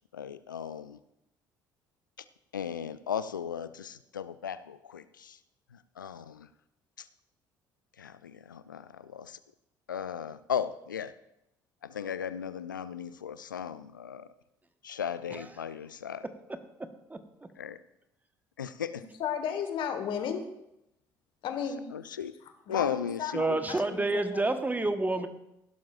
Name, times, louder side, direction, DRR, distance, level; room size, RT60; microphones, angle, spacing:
voice 1, 0.1-1.0 2.5-5.4 5.7-6.5 7.0-7.1 8.0-9.4 9.9-11.1 11.8-14.3 14.8-16.2 17.6-17.8 18.6-19.0 21.9-22.3 22.7-23.6, left 8 dB, 90° left, 14 dB, 0.4 m, -36 dB
voice 2, 17.1-17.5 23.3-25.3, right 2 dB, 15° right, 8 dB, 1.2 m, -29 dB
voice 3, 19.2-20.4 21.4-21.9 22.7-24.5, left 8 dB, 55° left, 7 dB, 1.4 m, -34 dB
16.0 x 11.5 x 2.5 m, 0.85 s
figure-of-eight pair, 55°, 10 cm